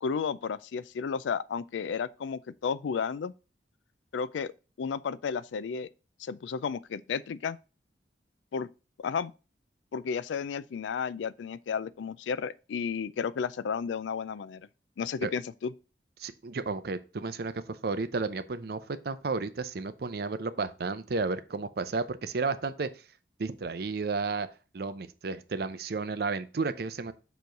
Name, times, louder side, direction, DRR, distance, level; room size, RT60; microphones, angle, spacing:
voice 1, 0.0-3.3 4.1-4.5 4.8-5.9 6.2-7.6 8.5-8.7 9.0-9.3 9.9-14.7 15.0-15.7, left 6 dB, 90° left, 0.4 m, -33 dB
voice 2, 16.2-22.9 23.4-24.5 24.7-27.1, right 4 dB, 60° right, 0.5 m, -32 dB
6.9 x 3.1 x 5.2 m
head